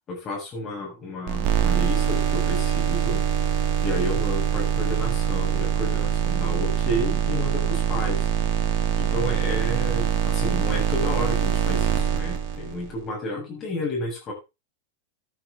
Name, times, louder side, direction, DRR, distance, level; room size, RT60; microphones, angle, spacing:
voice 1, 0.0-3.2 3.8-8.3 9.0-14.3, left 1 dB, 25° left, -2 dB, 7.3 m, -31 dB
sound 1, 1.3-12.9, right 9 dB, 40° right, 2.8 m, -24 dB
14.0 x 10.0 x 3.9 m, 0.28 s
figure-of-eight pair, 90°, 0 cm